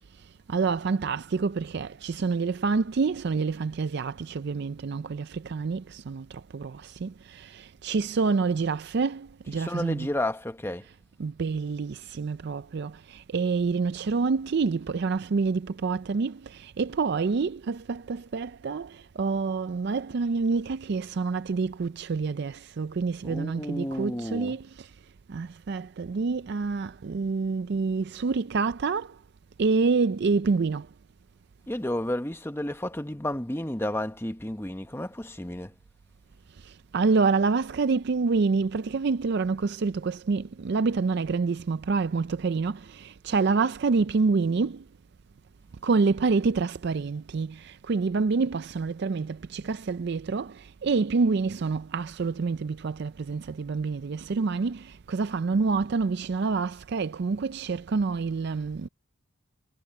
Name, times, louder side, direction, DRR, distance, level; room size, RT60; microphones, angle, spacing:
voice 1, 0.5-6.2 6.5-10.1 11.2-24.9 25.3-29.1 29.6-30.9 36.9-44.8 45.8-50.5 50.8-58.9, right 4 dB, 55° right, 0.4 m, -27 dB
voice 2, 9.4-10.8 23.2-24.6 31.7-35.7, left 1 dB, 10° left, 1.0 m, -32 dB
head